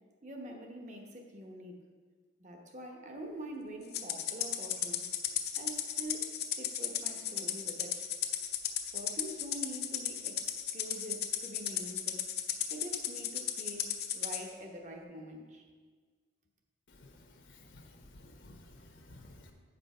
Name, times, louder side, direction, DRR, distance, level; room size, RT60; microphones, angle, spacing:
voice 1, 0.2-1.8 2.4-5.1 5.6-8.0 8.9-12.2 12.7-15.6, equal, 40° right, 2 dB, 1.0 m, -45 dB
Rattle (instrument), 3.9-14.4, left 10 dB, 55° left, 0.6 m, -35 dB
voice 2, 17.0-19.5, left 1 dB, 75° left, 3 dB, 1.1 m, -54 dB
8.6 x 5.3 x 5.5 m, 1.5 s
head